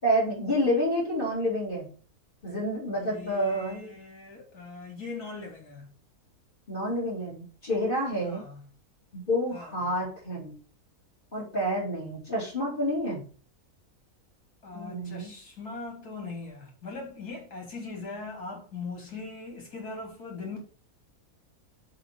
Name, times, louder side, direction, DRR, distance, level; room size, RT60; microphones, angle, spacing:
voice 1, 0.0-1.9 2.4-3.9 6.7-8.4 9.3-10.6 11.3-13.2 14.7-15.3, equal, 30° left, 3.5 m, -28 dB
voice 2, 2.9-5.9 8.2-8.6 9.5-9.8 14.6-20.6, left 3 dB, 75° left, 3.4 m, -40 dB
7.4 x 4.1 x 5.9 m
omnidirectional pair, 1.6 m